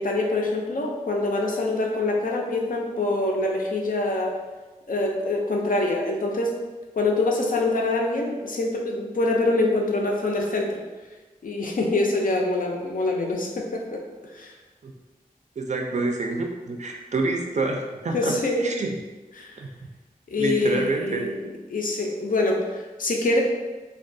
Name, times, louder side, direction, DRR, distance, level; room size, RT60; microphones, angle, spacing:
voice 1, 0.0-4.4 4.9-6.6 7.0-10.8 11.4-14.5 18.1-18.7 19.4-19.6 20.3-23.4, left 2 dB, 65° left, 0 dB, 0.4 m, -25 dB
voice 2, 15.6-18.3 18.6-18.9 19.6-19.7 20.4-21.2, right 3 dB, 50° right, 2 dB, 0.4 m, -27 dB
2.2 x 2.2 x 2.5 m, 1.2 s
cardioid pair, 40°, 15 cm